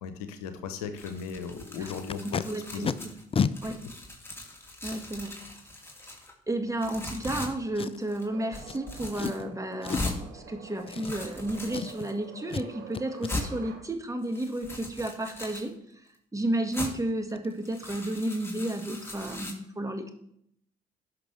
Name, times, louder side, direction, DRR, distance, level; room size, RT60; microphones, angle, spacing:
voice 1, 0.0-2.5 2.7-3.0 3.8-3.9, left 6 dB, 80° left, 9 dB, 0.9 m, -37 dB
sound 1, 1.0-3.2 3.5-6.3 6.8-7.5 8.0-8.2 8.5-9.4 9.9-10.2 10.8-12.1 12.7-12.8 13.2-13.5 14.2-15.7 16.7-16.9 17.5-19.5, left 1 dB, 10° left, 2.7 m, -39 dB
Packing tape duct tape, 1.9-2.4 2.8-2.9 3.3-3.5 4.3-4.4 7.7-8.2 8.7-8.8 9.1-9.4 9.8-10.2 10.8-11.4 11.7-12.1 12.5-12.7 12.9-13.3 16.4-16.5 16.8-16.9 17.3-17.5 17.7-18.0 18.2-18.3, left 6 dB, 30° left, 0.5 m, -31 dB
voice 2, 2.2-3.1 3.6-3.8 4.8-5.4 6.5-15.8 16.3-20.1, right 1 dB, 15° right, 5 dB, 1.6 m, -32 dB
sound 2, 8.1-13.8, right 6 dB, 60° right, 2.1 m, -48 dB
17.0 x 6.0 x 3.3 m, 0.73 s
figure-of-eight pair, 45°, 20 cm